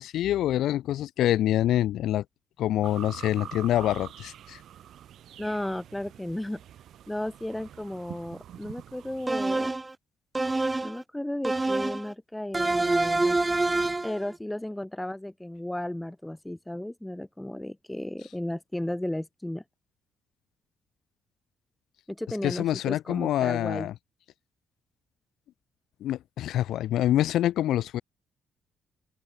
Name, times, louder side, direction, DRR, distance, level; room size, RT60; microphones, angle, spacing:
voice 1, 0.0-2.2 2.6-4.6 22.4-23.9 26.0-28.0, left 13 dB, 80° left, 0.6 m, -26 dB
sound 1, 2.8-9.3, right 11 dB, 70° right, 5.2 m, -45 dB
voice 2, 5.4-6.6 7.1-9.7 10.8-13.4 14.0-19.6 22.1-23.9, left 1 dB, 5° left, 4.2 m, -34 dB
sound 2, 9.3-9.9 10.3-11.0 11.4-12.1 12.5-14.2, right 2 dB, 20° right, 0.6 m, -26 dB
open air
cardioid pair, 90°, 0 cm